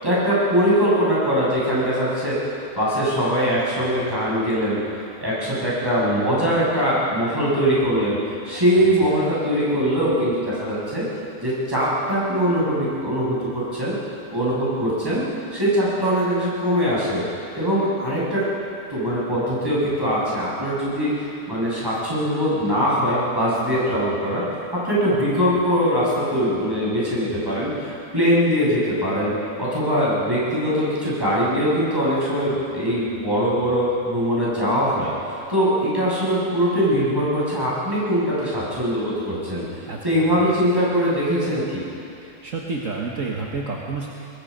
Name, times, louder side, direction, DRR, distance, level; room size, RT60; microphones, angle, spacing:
voice 1, 0.0-2.4 2.8-4.8 5.2-8.2 8.4-11.0 11.4-13.9 14.3-15.3 15.5-17.2 17.5-18.4 18.9-24.4 24.7-35.1 35.5-39.6 40.0-41.9, equal, 15° right, -8 dB, 7.3 m, -22 dB
voice 2, 8.5-9.2 25.1-25.4 39.9-40.6 42.2-44.1, right 3 dB, 60° right, -2 dB, 1.9 m, -31 dB
23.5 x 21.0 x 5.4 m, 2.7 s
omnidirectional pair, 1.6 m